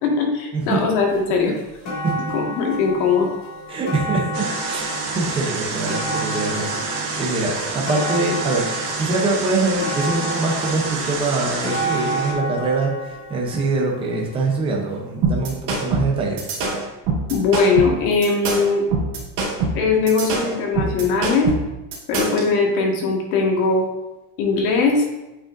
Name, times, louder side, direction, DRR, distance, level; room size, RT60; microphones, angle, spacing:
voice 1, 0.0-1.5 2.3-3.3 17.3-18.9 19.7-21.5 22.1-23.9 24.4-25.0, left 4 dB, 65° left, 0 dB, 1.7 m, -20 dB
sound 1, 1.1-1.2 1.6-14.7 15.5-15.6, right 1 dB, 35° left, 2.1 m, -30 dB
voice 2, 3.7-8.7 9.0-16.5, right 3 dB, 10° right, -2 dB, 0.6 m, -24 dB
sound 2, 4.3-12.3, right 4 dB, 65° right, 2.0 m, -28 dB
sound 3, 15.2-22.5, right 3 dB, 40° right, 2.3 m, -23 dB
8.7 x 4.9 x 2.5 m, 1.0 s
cardioid pair, 180°, 48 cm